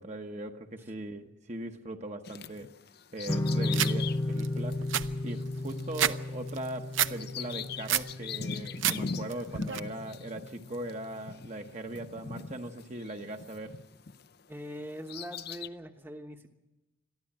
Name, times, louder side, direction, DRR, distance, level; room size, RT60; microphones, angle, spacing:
voice 1, 0.0-2.7 3.1-4.9 5.2-13.8, right 1 dB, 35° right, 1.1 m, -40 dB
Bird vocalization bird call bird song, 2.2-14.3 14.8-15.7, left 5 dB, 50° left, 0.6 m, -41 dB
sound 1, 3.3-10.5, left 2 dB, 15° left, 1.1 m, -34 dB
sound 2, 3.7-3.9 4.4-4.5 4.7-6.2 6.5-7.1 7.5-8.1 8.5-9.0 9.3-9.8, right 11 dB, 70° right, 0.7 m, -29 dB
voice 2, 14.5-16.5, equal, 10° right, 1.1 m, -42 dB
22.5 x 14.5 x 8.7 m
head